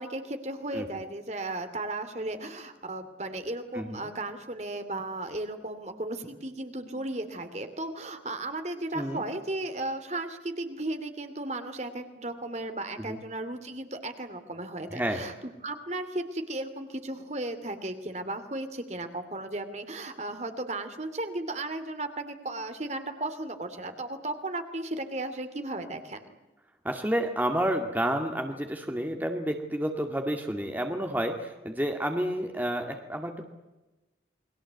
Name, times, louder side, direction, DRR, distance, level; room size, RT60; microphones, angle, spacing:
voice 1, 0.0-26.3, right 2 dB, 40° right, 8 dB, 2.7 m, -35 dB
voice 2, 8.9-9.2 13.1-13.2 14.9-15.3 26.8-33.5, right 1 dB, 10° right, 4 dB, 2.0 m, -30 dB
29.5 x 22.5 x 8.2 m, 1.1 s
head